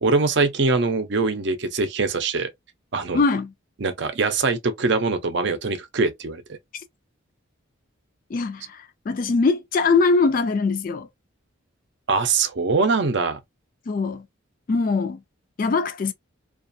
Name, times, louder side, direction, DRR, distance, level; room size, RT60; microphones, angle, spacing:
voice 1, 0.0-2.5 2.9-3.2 3.8-6.4 12.1-13.4, right 4 dB, 55° right, 0.5 m, -22 dB
voice 2, 3.1-3.5 6.7-6.8 8.3-11.1 13.9-14.3 14.7-15.2 15.6-16.1, left 4 dB, 40° left, 0.3 m, -22 dB
2.4 x 2.3 x 2.5 m
head